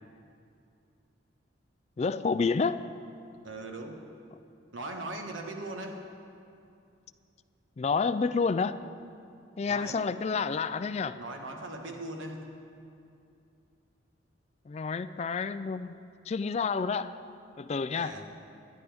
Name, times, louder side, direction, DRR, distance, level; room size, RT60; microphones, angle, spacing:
voice 1, 2.0-2.8 7.8-8.8 9.6-11.2 14.7-16.0 16.3-17.1 17.6-18.1, left 5 dB, 35° left, 13 dB, 0.3 m, -29 dB
voice 2, 3.4-4.1 4.7-6.0 9.7-10.0 11.1-12.5 17.9-18.3, right 2 dB, 90° right, 3 dB, 1.4 m, -39 dB
20.5 x 11.0 x 3.5 m, 2.5 s
head